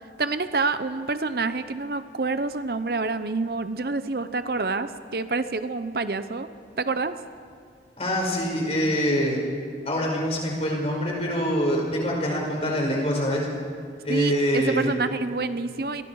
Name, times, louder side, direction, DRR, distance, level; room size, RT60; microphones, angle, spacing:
voice 1, 0.2-6.5 6.8-7.2 14.1-16.0, right 3 dB, 55° right, 11 dB, 0.7 m, -27 dB
voice 2, 8.0-9.4 9.9-13.5 14.0-14.9, equal, 35° left, -1 dB, 5.4 m, -25 dB
28.0 x 22.0 x 4.8 m, 2.2 s
head